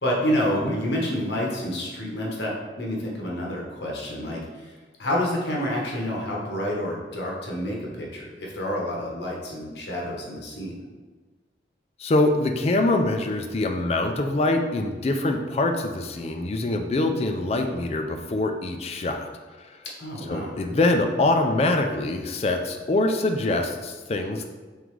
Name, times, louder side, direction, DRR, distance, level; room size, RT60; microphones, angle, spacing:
voice 1, 0.0-4.7 5.0-10.7 20.0-20.5, equal, 70° left, -3 dB, 1.0 m, -28 dB
voice 2, 12.0-19.3 19.6-19.8 20.3-24.5, left 2 dB, 35° left, 4 dB, 0.3 m, -24 dB
3.7 x 3.5 x 3.1 m, 1.3 s
head